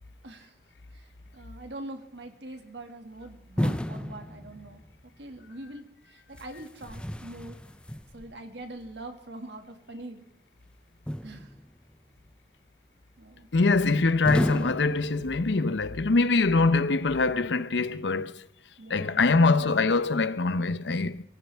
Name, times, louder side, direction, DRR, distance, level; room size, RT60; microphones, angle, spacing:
voice 1, 1.3-4.8 5.2-7.6 8.1-10.2 11.2-11.5 13.2-13.5 18.8-19.9, right 1 dB, 85° right, 2.0 m, -43 dB
sound 1, 3.6-5.0 6.3-8.4 11.1-11.9 14.2-15.7, equal, 5° left, 0.5 m, -33 dB
voice 2, 13.5-18.4 18.9-21.2, left 3 dB, 90° left, 0.7 m, -24 dB
24.0 x 15.5 x 3.5 m
head